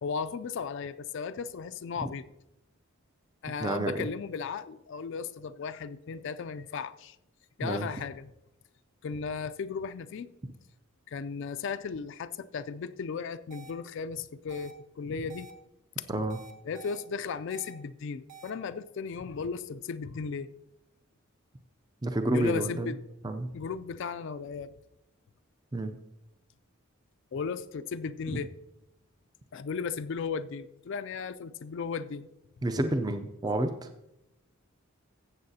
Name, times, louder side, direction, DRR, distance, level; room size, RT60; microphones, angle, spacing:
voice 1, 0.0-2.2 3.4-7.2 7.6-8.3 9.0-10.3 11.1-15.5 16.1-16.2 16.6-20.5 22.3-23.0 23.5-24.7 27.3-28.5 29.5-32.3, left 5 dB, 60° left, 0.4 m, -36 dB
voice 2, 3.6-4.1 7.6-7.9 16.1-16.4 22.0-22.9 23.2-23.5 25.7-25.9 28.3-28.4 32.6-33.9, right 1 dB, 20° right, 0.4 m, -29 dB
sound 1, 13.5-13.7 14.5-14.7 15.3-15.5 16.3-17.0 17.5-17.7 18.3-18.5, right 5 dB, 40° right, 1.0 m, -48 dB
14.0 x 8.0 x 2.8 m
head